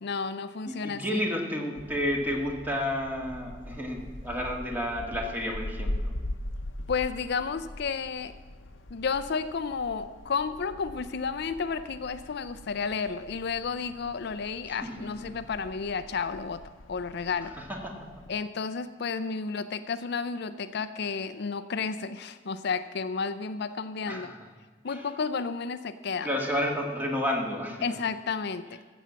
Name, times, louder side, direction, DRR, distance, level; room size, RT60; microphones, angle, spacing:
voice 1, 0.0-1.2 6.9-8.3 8.9-16.6 16.9-17.5 18.3-24.3 24.8-26.3 27.8-28.7, left 5 dB, 60° left, 12 dB, 0.5 m, -32 dB
voice 2, 0.6-6.1 14.7-15.4 17.6-18.1 24.1-24.4 24.9-25.1 26.2-27.9, left 1 dB, 10° right, 1 dB, 1.9 m, -31 dB
sound 1, 1.7-18.3, left 1 dB, 90° left, 0.8 m, -41 dB
15.0 x 7.1 x 7.4 m, 1.4 s
head